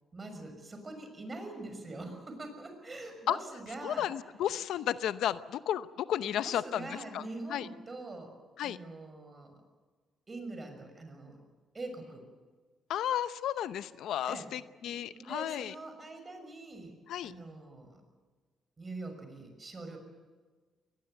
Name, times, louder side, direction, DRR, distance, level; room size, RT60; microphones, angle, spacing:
voice 1, 0.1-4.3 6.2-8.3 8.6-9.6 10.3-11.4 11.7-12.2 14.3-14.5 14.8-16.9 17.2-18.0 18.8-20.0, right 2 dB, 25° right, 6 dB, 6.2 m, -44 dB
voice 2, 3.8-7.2 7.5-7.7 8.6-8.8 12.9-15.7 17.1-17.3, left 11 dB, 80° left, 13 dB, 0.8 m, -33 dB
23.0 x 20.5 x 8.1 m, 1.4 s
cardioid pair, 120°, 0 cm